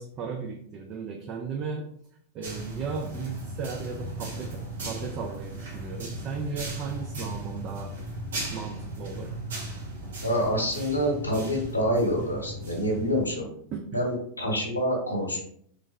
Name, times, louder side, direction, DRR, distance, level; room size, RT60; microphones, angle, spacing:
voice 1, 0.0-1.9 2.3-8.0 8.5-9.4 13.7-14.0, right 5 dB, 35° right, 3 dB, 0.4 m, -36 dB
sound 1, 2.4-13.3, right 1 dB, 65° right, 0.9 m, -37 dB
voice 2, 10.2-13.5 13.9-15.4, equal, 80° left, 1 dB, 0.9 m, -27 dB
3.6 x 3.1 x 2.2 m, 0.64 s
figure-of-eight pair, 90°, 0 cm